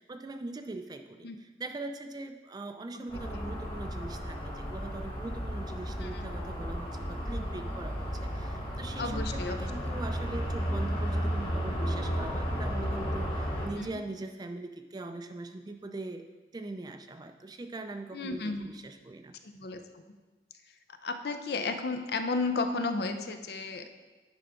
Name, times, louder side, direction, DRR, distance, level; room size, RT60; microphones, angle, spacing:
voice 1, 0.0-16.3 16.5-19.3, right 2 dB, 20° right, 7 dB, 0.4 m, -41 dB
sound 1, 3.1-13.7, equal, 25° left, 1.3 m, -33 dB
voice 2, 9.0-9.6 13.8-13.9 18.1-18.7 19.4-20.0 21.0-23.9, left 3 dB, 60° left, 8 dB, 0.5 m, -33 dB
10.0 x 3.5 x 5.0 m, 1.2 s
head